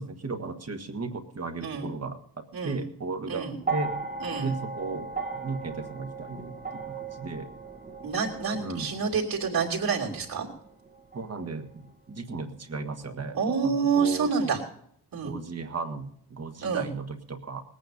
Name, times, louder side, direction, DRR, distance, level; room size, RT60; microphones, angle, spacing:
voice 1, 0.0-2.2 2.6-3.9 4.4-6.8 7.1-7.5 8.5-8.9 11.1-13.4 13.6-14.5 15.2-17.6, right 3 dB, 40° right, 6 dB, 1.5 m, -35 dB
voice 2, 2.5-2.8 3.3-3.6 4.2-4.5 8.0-10.5 13.3-14.6 15.1-15.3 16.6-16.8, right 5 dB, 55° right, -3 dB, 3.0 m, -28 dB
sound 1, 3.6-11.9 13.0-13.1, right 4 dB, 20° right, 1.2 m, -37 dB
20.0 x 9.1 x 5.2 m, 0.67 s
wide cardioid pair, 125°, 41 cm